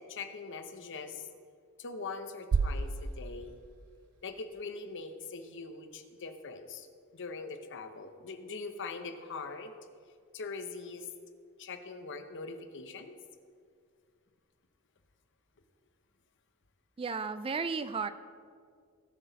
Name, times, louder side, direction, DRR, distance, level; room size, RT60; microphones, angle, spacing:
voice 1, 0.1-1.3 1.8-3.6 4.2-6.9 7.1-9.7 10.3-11.1 11.6-13.2, left 4 dB, 55° left, 8 dB, 0.9 m, -42 dB
sound 1, 2.5-4.6, right 4 dB, 80° right, 0.5 m, -33 dB
voice 2, 17.0-18.1, right 5 dB, 25° right, 12 dB, 0.3 m, -33 dB
18.5 x 6.2 x 4.0 m, 2.1 s
head